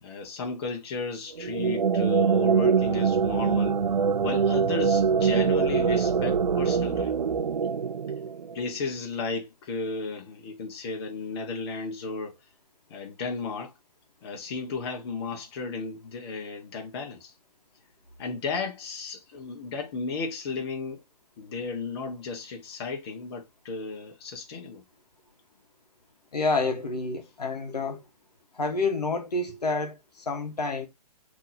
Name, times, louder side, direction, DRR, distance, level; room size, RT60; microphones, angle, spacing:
voice 1, 0.0-3.8 4.2-7.1 8.5-12.4 12.9-13.7 14.2-17.3 18.2-21.0 21.4-24.8, left 4 dB, 40° left, 1.3 m, -34 dB
sound 1, 1.3-8.8, right 6 dB, 85° right, 0.6 m, -24 dB
voice 2, 26.3-28.0 28.5-30.9, left 3 dB, 85° left, 1.3 m, -28 dB
6.0 x 3.1 x 2.7 m
hypercardioid pair, 145°, 20 cm